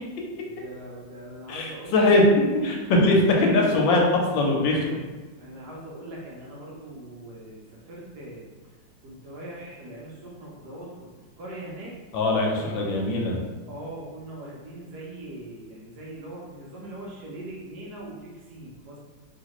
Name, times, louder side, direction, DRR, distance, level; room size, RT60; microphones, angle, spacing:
voice 1, 0.4-2.0 5.4-8.4 9.0-11.1 11.4-11.9 12.6-12.9 13.7-19.0, right 1 dB, 70° right, -4 dB, 1.1 m, -41 dB
voice 2, 1.5-2.2 2.6-4.0 4.3-4.8 12.1-13.4, left 2 dB, 80° left, 0 dB, 1.4 m, -21 dB
3.2 x 2.8 x 2.9 m, 1.3 s
omnidirectional pair, 2.1 m